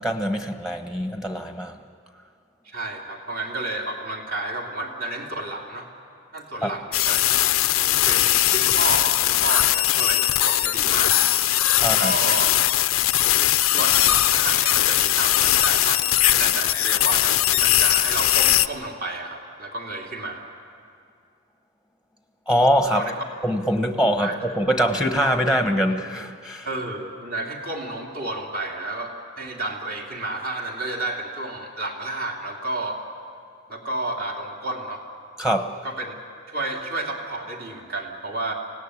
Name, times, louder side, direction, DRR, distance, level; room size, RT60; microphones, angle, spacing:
voice 1, 0.0-1.8 6.6-6.7 11.8-12.1 22.5-23.1 23.4-26.7 35.4-35.8, equal, 5° right, 5 dB, 1.2 m, -23 dB
voice 2, 2.6-5.9 6.3-7.2 8.0-11.2 12.0-12.5 13.7-20.4 22.9-23.1 24.2-24.4 26.6-33.0 33.7-35.0 35.8-36.2 36.5-38.5, right 2 dB, 45° right, 0 dB, 2.8 m, -31 dB
sound 1, 6.9-18.7, left 14 dB, 90° left, 0.6 m, -20 dB
25.0 x 18.0 x 9.8 m, 2.3 s
head